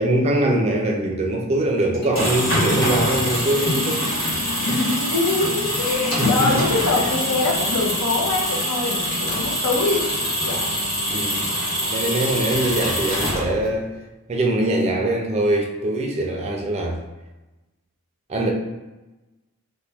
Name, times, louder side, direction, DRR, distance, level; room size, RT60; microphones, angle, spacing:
voice 1, 0.0-4.0 4.7-4.8 6.2-6.7 11.1-11.4 11.9-13.9 14.3-17.0 18.3-18.5, right 1 dB, 30° right, 1 dB, 0.4 m, -22 dB
sound 1, 1.9-13.8, equal, 60° left, 1.1 m, -24 dB
voice 2, 4.6-10.0 10.4-10.6, left 3 dB, 80° left, -1 dB, 0.7 m, -24 dB
2.8 x 2.1 x 3.4 m, 1.1 s
head